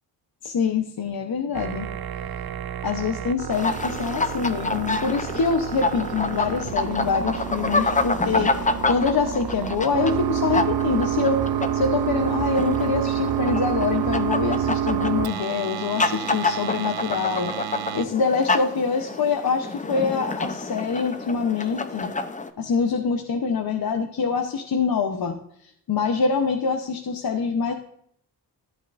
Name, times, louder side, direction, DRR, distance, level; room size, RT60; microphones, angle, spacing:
voice 1, 0.4-1.9 2.8-11.5 11.7-17.5 17.9-22.1 22.6-25.4 25.9-27.7, left 5 dB, 60° left, 4 dB, 1.0 m, -25 dB
sound 1, 1.5-18.0, right 9 dB, 60° right, 0.6 m, -28 dB
sound 2, 3.5-22.5, left 3 dB, 20° left, 0.7 m, -29 dB
13.5 x 8.6 x 2.6 m, 0.68 s
cardioid pair, 75°, 41 cm